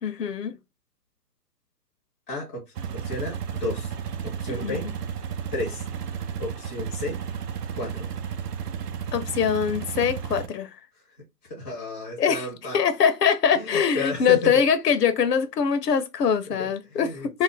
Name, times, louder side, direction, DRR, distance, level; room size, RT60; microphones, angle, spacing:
voice 1, 0.0-0.5 4.5-4.9 9.1-10.7 12.2-12.4 12.7-17.4, left 7 dB, 80° left, 0.7 m, -23 dB
voice 2, 2.3-2.6 3.0-3.9 4.2-4.9 5.5-5.8 6.4-7.2 7.7-8.1 11.5-12.8 13.6-14.6 16.6-17.3, left 2 dB, 10° left, 0.5 m, -32 dB
sound 1, 2.8-10.5, right 7 dB, 75° right, 0.6 m, -33 dB
2.4 x 2.1 x 3.8 m
hypercardioid pair, 145°, 48 cm